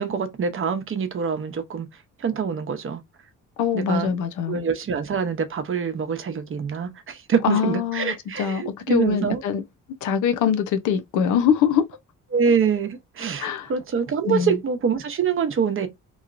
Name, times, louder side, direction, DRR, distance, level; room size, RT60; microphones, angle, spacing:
voice 1, 0.0-1.9 2.2-3.0 3.7-4.1 4.5-9.4 12.3-15.9, right 6 dB, 45° right, 0.8 m, -25 dB
voice 2, 3.6-4.6 7.4-8.1 8.4-9.6 10.0-11.8 13.4-13.7 14.2-14.5, left 8 dB, 80° left, 0.6 m, -23 dB
3.1 x 2.8 x 2.5 m
cardioid pair, 90°, 30 cm